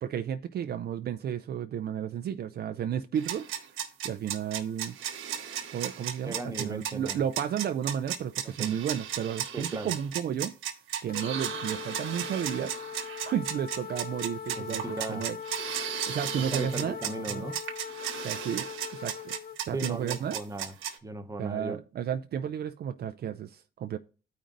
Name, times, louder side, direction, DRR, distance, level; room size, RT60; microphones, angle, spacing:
voice 1, 0.0-3.5 4.0-4.9 5.7-10.5 11.0-12.7 13.2-15.4 16.1-17.0 17.3-17.4 18.2-19.3 19.7-20.4 21.4-24.0, right 9 dB, 55° right, 0.4 m, -32 dB
sound 1, 3.2-21.0, right 10 dB, 85° right, 1.2 m, -35 dB
voice 2, 6.2-7.2 8.6-8.7 9.5-9.9 14.5-15.2 16.3-17.6 19.7-20.7 21.0-21.8, right 2 dB, 15° right, 0.9 m, -37 dB
sound 2, 11.1-19.6, left 7 dB, 50° left, 0.6 m, -41 dB
14.0 x 5.1 x 2.6 m
cardioid pair, 90°, 20 cm